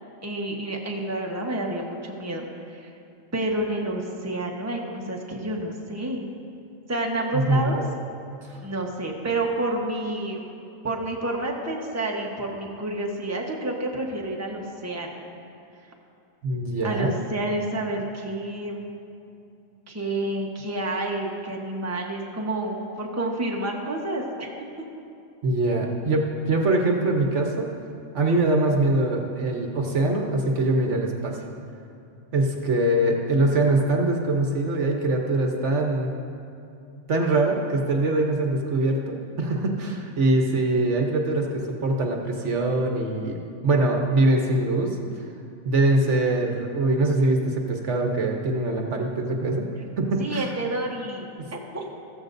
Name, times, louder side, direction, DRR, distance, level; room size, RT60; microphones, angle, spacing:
voice 1, 0.2-2.9 3.3-6.3 6.9-7.8 8.6-10.4 10.8-15.2 16.8-18.8 19.9-24.5 50.2-51.9, right 1 dB, 15° right, -1 dB, 1.1 m, -29 dB
voice 2, 7.3-7.7 8.5-8.6 16.4-17.1 25.4-27.7 28.1-31.4 32.3-36.1 37.1-45.0 45.6-49.6 50.0-50.5 51.4-51.5, right 2 dB, 60° right, 1 dB, 1.3 m, -23 dB
14.5 x 14.0 x 2.6 m, 2.6 s
omnidirectional pair, 1.4 m